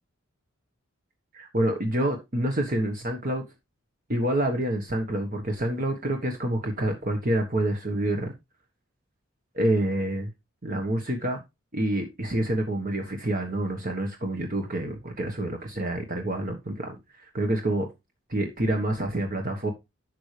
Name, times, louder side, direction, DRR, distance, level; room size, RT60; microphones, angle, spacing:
voice 1, 1.3-3.4 4.1-8.3 9.5-10.3 10.6-11.4 11.7-17.9 18.3-19.7, right 1 dB, 45° right, 1.4 m, -27 dB
11.0 x 6.3 x 3.3 m
head